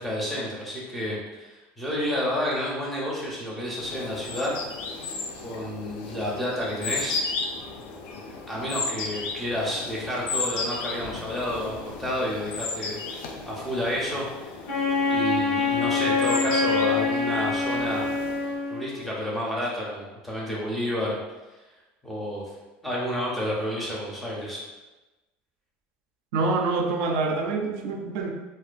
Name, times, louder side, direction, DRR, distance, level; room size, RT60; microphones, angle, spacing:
voice 1, 0.0-4.6 5.4-7.2 8.1-13.0 13.5-14.6 15.1-18.0 18.7-21.2 22.0-22.4 22.8-24.6, equal, ahead, -5 dB, 0.4 m, -30 dB
sound 1, 3.7-18.7, left 4 dB, 70° left, 0.3 m, -35 dB
Wind instrument woodwind instrument, 14.7-19.0, left 4 dB, 85° left, 0.8 m, -25 dB
voice 2, 26.3-28.3, right 3 dB, 85° right, 2 dB, 0.3 m, -26 dB
2.4 x 2.2 x 2.4 m, 1.1 s
cardioid pair, 175°, 4 cm